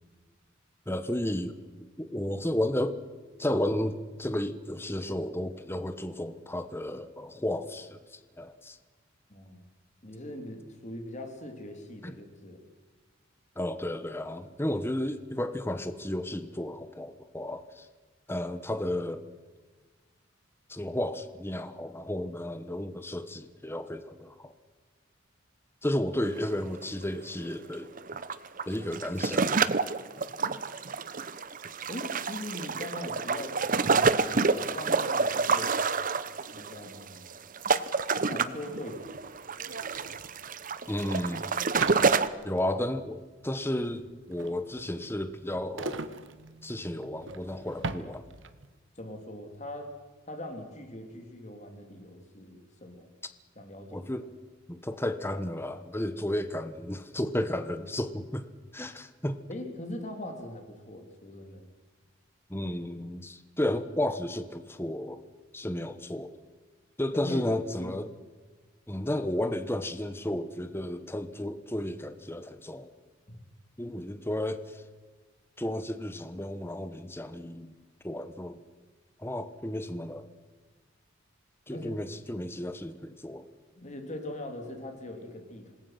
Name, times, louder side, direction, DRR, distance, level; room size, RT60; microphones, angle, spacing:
voice 1, 0.9-1.6 2.0-3.0 3.4-8.8 12.0-12.1 13.6-17.9 18.3-19.2 20.7-24.5 25.8-27.9 28.7-29.4 40.9-41.5 42.4-43.2 43.4-46.0 46.6-48.2 53.9-54.2 54.7-58.5 58.7-59.4 62.5-65.2 65.5-66.3 67.0-68.1 68.9-72.9 73.8-74.8 75.6-77.7 78.0-78.6 79.2-80.3 81.7-83.5, left 1 dB, 10° left, 10 dB, 1.1 m, -33 dB
voice 2, 9.3-9.6 10.0-12.6 31.9-35.8 36.5-37.5 37.8-38.0 38.3-39.3 49.0-49.9 50.3-53.1 53.5-54.1 59.5-61.7 67.1-67.4 67.8-68.0 73.3-73.4 81.7-81.9 83.7-85.7, left 1 dB, 35° left, 4 dB, 3.2 m, -41 dB
sound 1, 26.2-26.4 26.7-26.8 27.7-42.3, right 4 dB, 40° right, 0.9 m, -28 dB
sound 2, 38.0-38.1 38.3-48.7, right 3 dB, 65° right, 1.2 m, -42 dB
27.0 x 20.5 x 5.9 m, 1.4 s
head